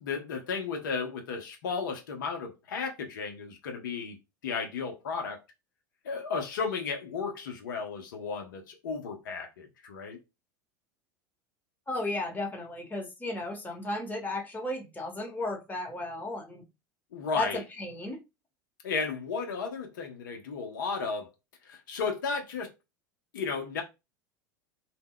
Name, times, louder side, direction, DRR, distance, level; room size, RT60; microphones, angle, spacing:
voice 1, 0.0-4.2 4.4-5.4 6.0-10.2 17.1-17.6 18.8-21.3 21.6-22.7 23.3-23.8, left 5 dB, 80° left, 0.7 m, -34 dB
voice 2, 11.9-16.6 17.3-18.2, left 2 dB, 15° left, 1.0 m, -34 dB
2.2 x 2.1 x 3.7 m
hypercardioid pair, 95°, 10 cm